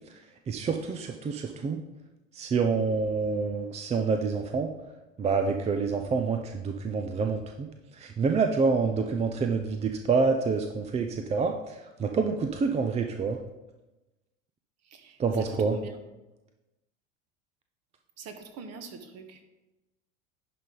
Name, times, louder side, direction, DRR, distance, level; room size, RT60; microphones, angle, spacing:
voice 1, 0.5-1.8 2.3-4.7 5.2-7.7 8.0-11.7 12.0-13.4 15.2-15.8, right 4 dB, 15° right, 5 dB, 0.5 m, -27 dB
voice 2, 14.8-15.9 18.2-19.4, right 5 dB, 40° right, 7 dB, 1.4 m, -44 dB
11.0 x 5.2 x 3.9 m, 1.0 s
figure-of-eight pair, 80°, 39 cm